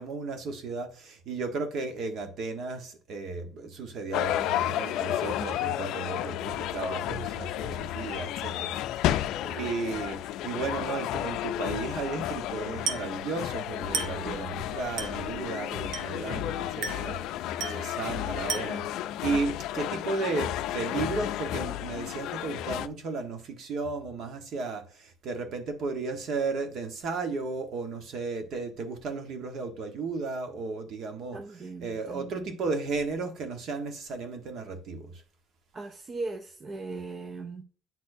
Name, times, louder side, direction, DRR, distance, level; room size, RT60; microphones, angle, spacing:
voice 1, 0.0-8.8 9.0-9.2 9.5-17.2 17.8-18.8 19.2-35.2, right 4 dB, 50° right, 1.2 m, -34 dB
sound 1, 4.1-22.9, left 12 dB, 70° left, 0.4 m, -32 dB
Glass, 12.9-13.2 13.9-14.3 15.0-15.3 15.9-16.3 16.8-17.2 17.6-17.9 18.5-18.9, right 4 dB, 70° right, 1.1 m, -34 dB
voice 2, 14.1-14.5 16.2-16.4 17.6-17.9 31.3-32.6 35.7-37.6, right 3 dB, 25° right, 0.4 m, -39 dB
9.1 x 4.3 x 2.7 m
cardioid pair, 155°, 0 cm